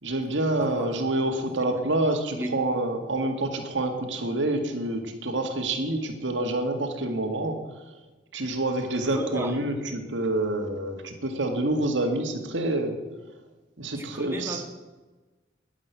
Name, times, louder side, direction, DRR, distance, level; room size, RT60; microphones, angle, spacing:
voice 1, 0.0-7.6 8.3-13.0 13.8-14.6, right 2 dB, 80° right, 5 dB, 2.0 m, -27 dB
voice 2, 0.5-1.0 1.7-1.8 2.3-2.5 9.1-9.6 14.0-14.7, right 1 dB, 15° right, 3 dB, 1.7 m, -34 dB
11.0 x 10.5 x 8.2 m, 1.2 s
head